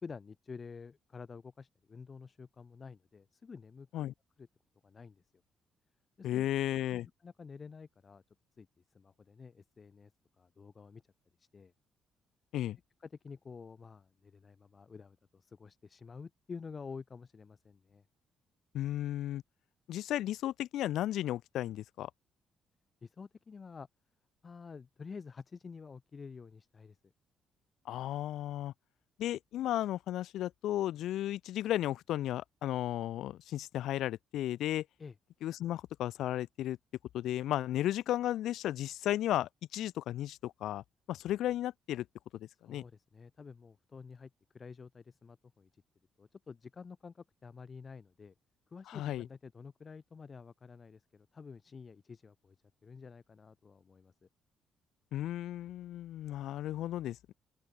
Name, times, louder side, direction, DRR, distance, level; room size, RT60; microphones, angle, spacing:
voice 1, 0.0-3.9 4.4-4.5 4.8-5.2 6.2-6.5 6.9-8.2 8.6-8.7 8.9-10.1 10.4-11.0 11.4-11.7 13.0-18.0 23.0-23.9 24.4-27.1 35.0-35.2 42.6-45.8 46.2-48.3 48.7-52.6 52.8-54.3, left 5 dB, 35° left, 3.9 m, -49 dB
voice 2, 6.2-7.1 12.5-12.8 18.7-19.4 19.9-22.1 27.9-28.7 29.2-34.8 35.4-36.8 37.1-42.0 42.4-42.8 48.9-49.2 55.1-57.3, left 13 dB, 80° left, 0.6 m, -34 dB
open air
cardioid pair, 90°, 0 cm